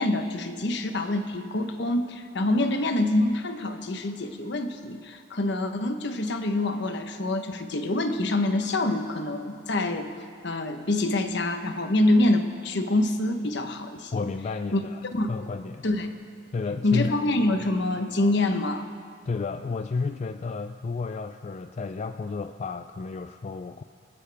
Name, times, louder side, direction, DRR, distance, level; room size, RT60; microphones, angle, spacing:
voice 1, 0.0-10.1 10.4-14.2 14.7-14.8 15.1-15.4 15.8-16.1 16.8-18.9, left 2 dB, 65° left, 7 dB, 1.0 m, -26 dB
voice 2, 14.1-15.9 16.5-17.1 19.3-23.8, left 4 dB, 35° left, 8 dB, 0.3 m, -32 dB
27.5 x 9.9 x 3.4 m, 2.4 s
head